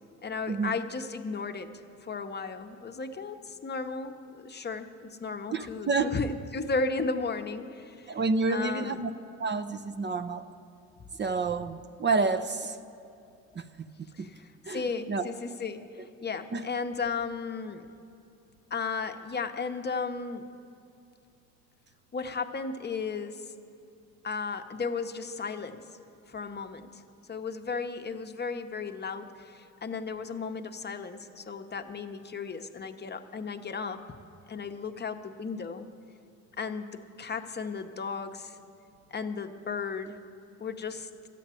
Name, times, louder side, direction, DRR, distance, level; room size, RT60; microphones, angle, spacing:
voice 1, 0.2-8.2 8.5-9.1 14.1-17.9 18.7-20.4 22.1-23.5 24.2-25.8 26.3-27.0 27.3-34.0 34.5-35.9 36.6-38.6 39.1-40.2 40.6-41.1, left 4 dB, 35° left, 7 dB, 0.8 m, -35 dB
voice 2, 5.5-6.1 8.1-9.1 9.4-10.4 11.2-12.8 13.6-14.3 14.7-15.3 16.5-16.6, right 4 dB, 35° right, 10 dB, 0.6 m, -29 dB
13.0 x 8.4 x 8.9 m, 2.6 s
cardioid pair, 90°, 30 cm